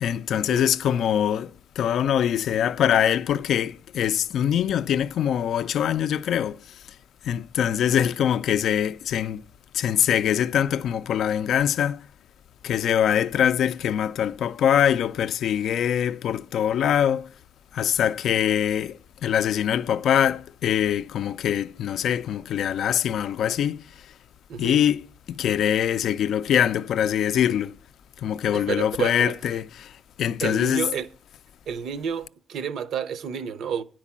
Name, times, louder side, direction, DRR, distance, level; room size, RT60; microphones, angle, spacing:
voice 1, 0.0-7.0 7.2-9.4 9.7-12.1 12.6-17.4 17.7-24.1 24.6-27.8 28.2-30.9, left 9 dB, 70° left, 0.3 m, -23 dB
voice 2, 28.5-29.3 30.4-31.1 31.7-33.8, right 7 dB, 75° right, 0.7 m, -30 dB
9.8 x 4.6 x 7.2 m
cardioid pair, 90°, 0 cm